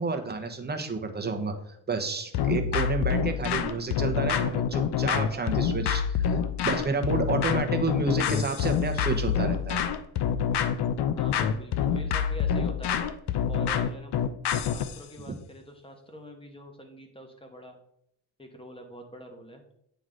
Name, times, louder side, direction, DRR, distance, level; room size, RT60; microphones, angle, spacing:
voice 1, 0.0-6.3 6.6-9.8 15.3-15.4, right 4 dB, 20° right, 5 dB, 0.9 m, -30 dB
sound 1, 2.3-15.0, left 8 dB, 60° left, 0.6 m, -26 dB
voice 2, 11.2-12.9 13.5-17.8 18.4-19.6, equal, 10° left, 4 dB, 1.3 m, -45 dB
9.0 x 3.1 x 3.8 m, 0.73 s
cardioid pair, 90°, 47 cm